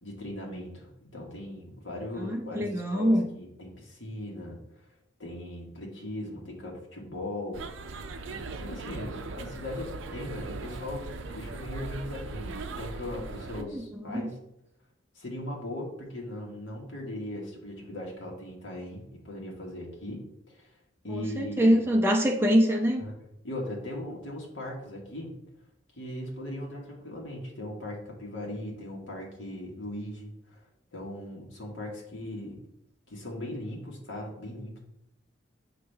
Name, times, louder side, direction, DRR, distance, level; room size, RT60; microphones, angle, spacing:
voice 1, 0.0-4.6 5.2-7.9 8.2-14.4 15.2-20.7 21.0-21.8 23.0-23.2 23.4-25.3 26.0-30.6 30.9-32.6 33.1-34.8, left 1 dB, 75° left, -2 dB, 1.8 m, -39 dB
voice 2, 2.2-3.3 13.7-14.3 21.1-23.0, equal, 10° right, 1 dB, 0.8 m, -24 dB
sound 1, 7.5-13.6, right 3 dB, 80° right, 0.5 m, -39 dB
6.4 x 5.2 x 3.4 m, 0.78 s
head